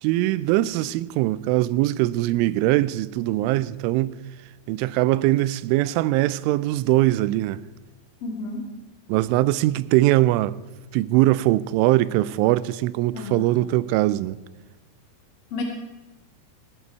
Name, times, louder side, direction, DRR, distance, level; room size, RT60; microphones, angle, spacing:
voice 1, 0.0-4.2 4.7-7.6 9.1-10.6 10.9-14.4, right 16 dB, 80° right, 2.9 m, -21 dB
voice 2, 8.2-8.7 13.1-13.6 15.5-15.6, left 3 dB, 40° left, 2.2 m, -32 dB
20.5 x 14.0 x 4.6 m
omnidirectional pair, 5.8 m